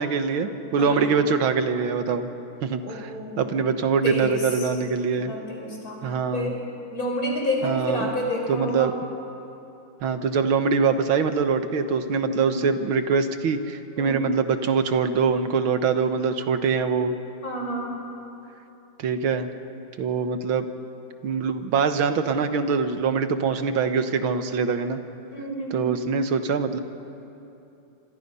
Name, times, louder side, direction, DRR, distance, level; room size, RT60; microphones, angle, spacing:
voice 1, 0.0-2.3 2.6-3.1 3.4-5.4 6.0-6.5 7.6-8.1 8.5-8.9 10.0-17.1 19.0-19.5 20.0-20.7 21.2-25.0 25.7-26.8, right 5 dB, 75° right, 9 dB, 1.9 m, -23 dB
voice 2, 0.8-1.1 2.8-3.4 4.0-4.7 5.1-6.1 6.3-6.6 6.9-9.0 12.3-12.6 14.0-14.3 17.4-18.0 25.3-26.1, equal, 45° left, -1 dB, 5.3 m, -30 dB
26.5 x 26.0 x 5.6 m, 2.8 s
omnidirectional pair, 2.3 m